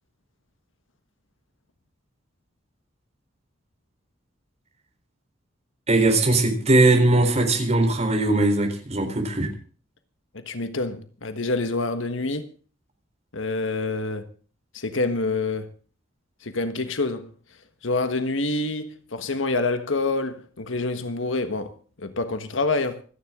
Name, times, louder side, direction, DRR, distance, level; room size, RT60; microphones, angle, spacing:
voice 1, 5.9-9.5, right 2 dB, 35° right, 4.0 m, -20 dB
voice 2, 10.3-12.5 13.3-14.3 14.7-15.7 16.4-17.3 17.8-23.0, left 3 dB, 75° left, 1.4 m, -27 dB
27.0 x 10.5 x 3.7 m
head